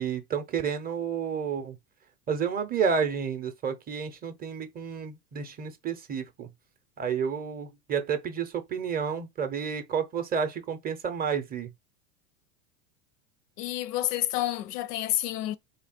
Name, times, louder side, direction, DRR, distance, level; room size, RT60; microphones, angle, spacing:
voice 1, 0.0-1.8 2.3-6.5 7.0-11.7, right 6 dB, 20° right, 0.5 m, -30 dB
voice 2, 13.6-15.6, left 14 dB, 85° left, 0.6 m, -29 dB
3.3 x 2.3 x 4.2 m
supercardioid pair, 115°, 46 cm